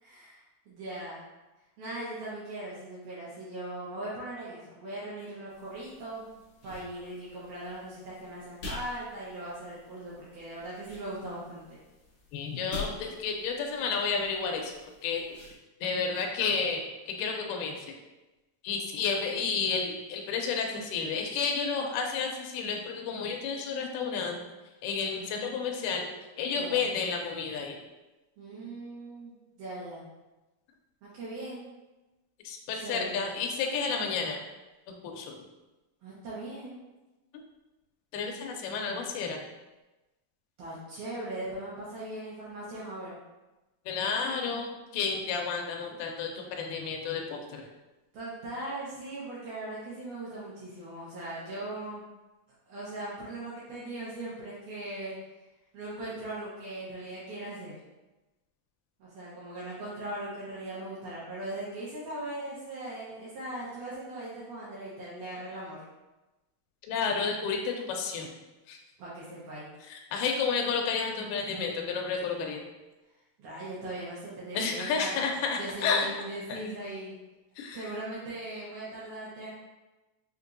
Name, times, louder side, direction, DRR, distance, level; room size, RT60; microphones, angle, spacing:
voice 1, 0.0-1.2 1.8-6.3 6.6-11.8 25.2-25.6 26.5-26.8 28.4-29.3 29.6-30.0 31.0-31.6 32.7-33.2 36.0-36.8 40.6-43.2 48.1-52.0 52.7-55.2 55.7-57.8 59.0-65.8 69.0-69.7 73.4-75.2 75.6-77.2 77.7-79.5, right 1 dB, 75° right, -8 dB, 2.4 m, -39 dB
sound 1, 5.5-15.6, left 3 dB, 65° left, 1.5 m, -47 dB
voice 2, 12.3-14.7 15.0-15.2 15.8-17.9 18.6-24.4 24.8-26.1 26.4-27.8 32.4-34.4 35.0-35.3 38.1-39.4 43.9-47.7 66.9-68.3 68.7-68.8 69.9-72.6 74.5-76.1 76.5-76.6 77.6-77.8, left 5 dB, 85° left, 2 dB, 2.2 m, -31 dB
5.8 x 2.6 x 2.5 m, 1.1 s
omnidirectional pair, 3.8 m